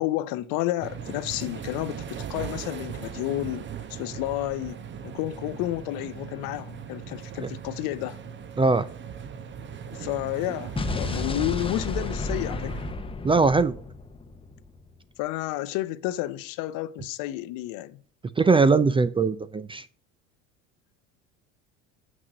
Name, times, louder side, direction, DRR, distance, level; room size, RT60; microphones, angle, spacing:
voice 1, 0.0-8.2 9.9-12.8 15.2-18.0, left 15 dB, 65° left, 0.8 m, -31 dB
sound 1, 0.8-12.9, right 7 dB, 30° right, 0.9 m, -39 dB
Explosion, 10.8-14.8, left 2 dB, 15° left, 0.8 m, -32 dB
voice 2, 13.2-13.8 18.4-19.9, right 4 dB, 15° right, 0.4 m, -21 dB
7.5 x 6.2 x 6.3 m
supercardioid pair, 95°, 36 cm